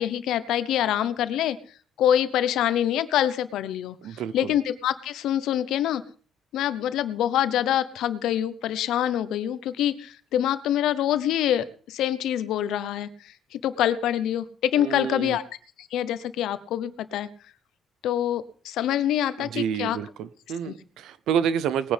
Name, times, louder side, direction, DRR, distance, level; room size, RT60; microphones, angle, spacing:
voice 1, 0.0-1.6 2.0-6.0 6.5-15.4 15.8-17.3 18.0-20.0 20.7-20.8, left 11 dB, 85° left, 0.9 m, -25 dB
voice 2, 4.0-4.5 14.8-15.4 19.4-21.9, right 8 dB, 85° right, 0.7 m, -28 dB
20.0 x 9.7 x 3.5 m
cardioid pair, 90°, 0 cm